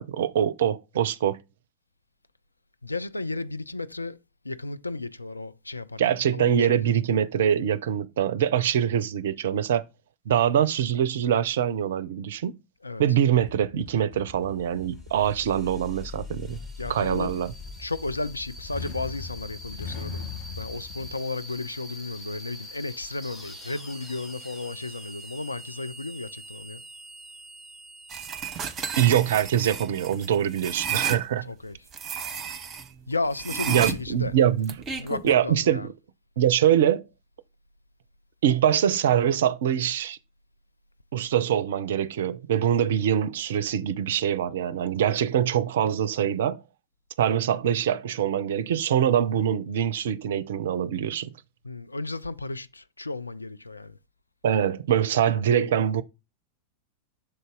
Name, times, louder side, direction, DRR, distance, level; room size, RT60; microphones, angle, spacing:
voice 1, 0.0-1.4 6.0-9.9 10.3-12.6 13.0-16.6 16.9-17.5 29.0-31.4 33.7-34.8 35.2-35.9 36.4-37.0 38.4-40.2 41.1-46.6 47.2-51.3 54.4-56.0, right 9 dB, 60° right, 0.4 m, -24 dB
voice 2, 2.8-4.2 4.4-6.8 12.8-13.0 16.8-17.4 17.8-20.3 20.5-26.8 31.4-31.9 33.1-34.4 34.9-35.9 51.6-54.0 55.3-55.6, left 3 dB, 80° left, 0.4 m, -34 dB
sound 1, 13.4-21.1, left 6 dB, 45° left, 1.0 m, -41 dB
sound 2, 14.4-30.8, left 1 dB, 20° left, 1.9 m, -44 dB
sound 3, 28.1-31.2 31.9-32.9 33.4-35.3, right 7 dB, 25° right, 0.8 m, -32 dB
6.6 x 4.0 x 3.7 m
figure-of-eight pair, 90°, 0 cm